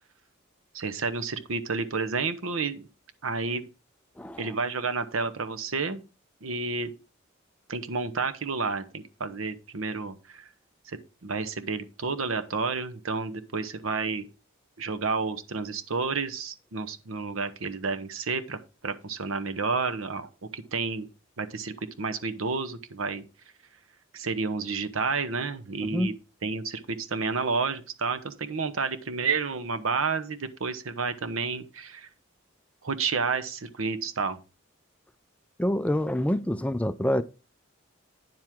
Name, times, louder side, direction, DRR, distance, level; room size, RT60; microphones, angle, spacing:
voice 1, 0.7-2.9 3.2-3.7 4.4-6.0 6.4-6.9 7.7-10.5 10.9-14.3 14.8-21.1 21.4-23.2 24.1-26.1 26.4-32.1 32.8-34.4, right 4 dB, 80° right, 0.9 m, -30 dB
voice 2, 4.2-4.5 25.9-26.1 35.6-37.2, equal, 5° left, 0.3 m, -26 dB
9.4 x 7.5 x 3.6 m
head